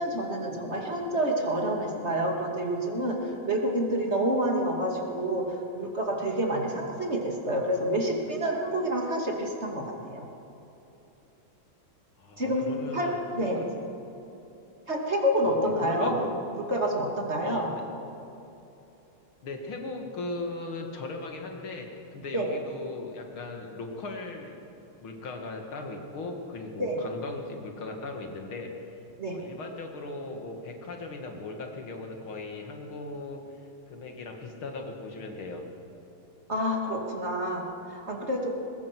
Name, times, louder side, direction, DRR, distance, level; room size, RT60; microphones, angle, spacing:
voice 1, 0.0-10.3 12.4-13.6 14.9-16.3 16.5-17.7 22.3-22.5 26.8-27.0 29.2-29.4 36.5-38.5, right 1 dB, 30° right, 0 dB, 2.8 m, -28 dB
voice 2, 12.2-13.2 13.6-13.7 15.4-16.3 17.4-17.8 19.4-24.6 25.0-29.0 29.3-35.6, left 3 dB, 90° left, 3 dB, 3.0 m, -38 dB
21.5 x 20.5 x 6.2 m, 3.0 s
omnidirectional pair, 2.2 m